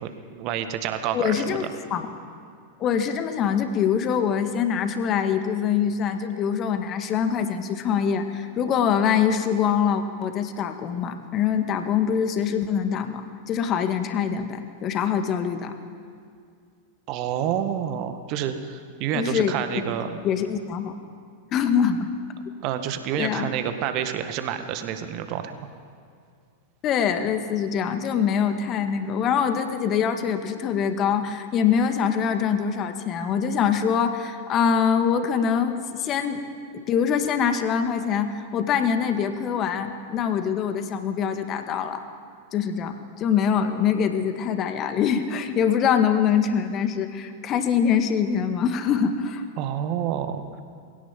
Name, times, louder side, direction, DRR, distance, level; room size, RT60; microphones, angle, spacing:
voice 1, 0.0-1.7 17.1-20.2 22.6-25.7 49.6-50.4, right 9 dB, 40° right, 8 dB, 1.8 m, -28 dB
voice 2, 1.1-2.1 2.8-13.2 13.5-15.8 19.1-19.8 20.2-20.9 21.5-22.1 23.2-23.5 26.8-36.4 36.7-42.0 42.5-49.4, left 7 dB, 35° left, 7 dB, 1.9 m, -24 dB
21.5 x 17.0 x 7.5 m, 2.3 s
figure-of-eight pair, 90°, 0 cm